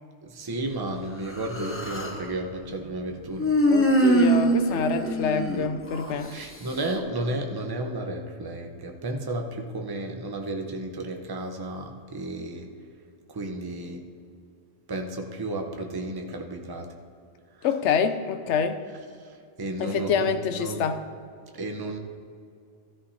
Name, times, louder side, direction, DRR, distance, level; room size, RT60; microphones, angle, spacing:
voice 1, 0.2-3.6 6.3-12.7 13.3-14.0 14.9-16.9 19.2-20.9 21.5-22.0, right 1 dB, 20° right, 3 dB, 0.7 m, -33 dB
Human voice, 1.3-2.2 3.4-6.1, right 1 dB, 10° left, 0.7 m, -23 dB
voice 2, 3.7-6.3 17.6-18.8 19.8-21.0, left 6 dB, 65° left, 9 dB, 0.9 m, -26 dB
14.5 x 13.0 x 2.8 m, 2.3 s
omnidirectional pair, 1.3 m